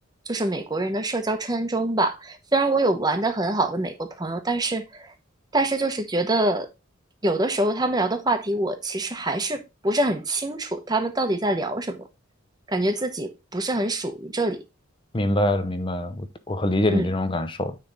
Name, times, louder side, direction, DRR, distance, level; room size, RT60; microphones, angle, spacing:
voice 1, 0.3-5.1 5.5-6.7 7.2-12.1 12.7-14.6 16.9-17.1, right 2 dB, 20° right, 0.9 m, -25 dB
voice 2, 15.1-17.8, left 1 dB, 25° left, 0.7 m, -24 dB
9.3 x 3.4 x 4.0 m
head